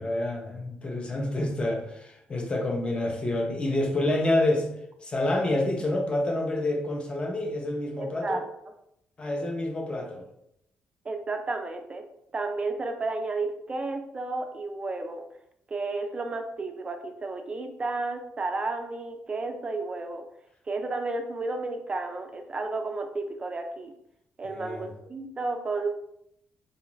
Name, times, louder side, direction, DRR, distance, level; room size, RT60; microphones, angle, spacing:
voice 1, 0.0-4.7 5.0-8.4 9.2-10.3 24.5-24.9, left 1 dB, 25° left, 0.6 m, -28 dB
voice 2, 8.0-8.4 11.1-12.1 12.3-15.2 15.7-20.2 20.7-23.9 24.4-25.9, right 3 dB, 25° right, 0.3 m, -32 dB
3.9 x 2.4 x 3.0 m
cardioid pair, 135°, 4 cm